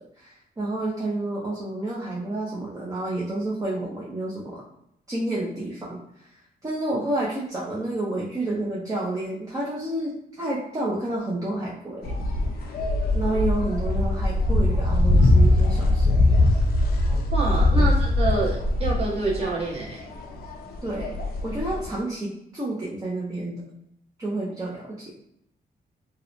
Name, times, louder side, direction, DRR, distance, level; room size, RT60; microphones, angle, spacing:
voice 1, 0.2-4.6 5.1-6.3 6.6-12.2 13.1-16.2 17.7-17.9 20.8-21.2 21.4-23.6 24.2-25.1, right 2 dB, 20° right, -4 dB, 0.5 m, -30 dB
sound 1, 12.0-21.9, left 2 dB, 70° left, 0.5 m, -21 dB
voice 2, 17.3-20.0, right 3 dB, 40° right, -6 dB, 1.2 m, -27 dB
2.7 x 2.1 x 2.5 m, 0.78 s
cardioid pair, 100°, 16 cm